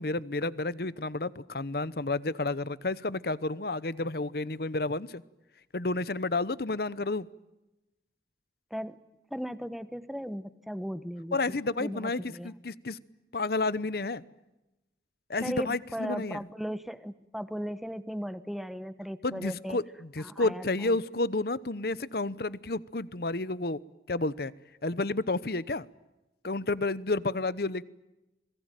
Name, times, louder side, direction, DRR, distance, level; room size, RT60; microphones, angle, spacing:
voice 1, 0.0-5.2 5.7-7.3 11.3-13.0 13.3-14.2 15.3-16.4 19.2-23.8 24.1-24.5 24.8-25.9 26.4-27.8, left 2 dB, 60° left, 18 dB, 0.9 m, -31 dB
voice 2, 9.3-12.6 15.4-19.8 20.2-21.0, equal, ahead, 13 dB, 1.1 m, -37 dB
28.0 x 22.0 x 9.1 m, 1.0 s
head